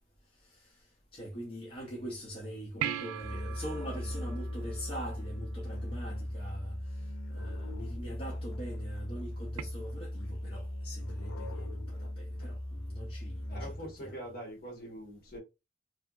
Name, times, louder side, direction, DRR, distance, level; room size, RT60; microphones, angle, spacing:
voice 1, 0.4-0.9 1.1-14.3, equal, 25° left, 0.6 m, -43 dB
sound 1, 2.8-5.5 9.6-9.7, right 10 dB, 90° right, 0.3 m, -39 dB
Musical instrument, 3.2-14.0, left 1 dB, 80° left, 0.6 m, -39 dB
voice 2, 13.5-15.4, equal, 50° left, 1.2 m, -43 dB
2.8 x 2.7 x 2.3 m
head